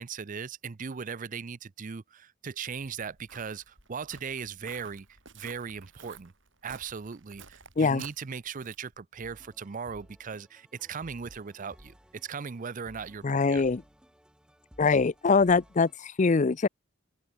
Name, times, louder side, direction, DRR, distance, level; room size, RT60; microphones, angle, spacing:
voice 1, 0.0-5.1 5.3-6.3 6.6-13.6, right 6 dB, 40° right, 0.5 m, -38 dB
Walk footsteps, 2.7-9.0, right 5 dB, 65° right, 7.7 m, -53 dB
sound 1, 9.2-16.0, equal, 5° right, 4.6 m, -56 dB
voice 2, 13.2-13.8 14.8-16.7, left 4 dB, 35° left, 0.5 m, -23 dB
head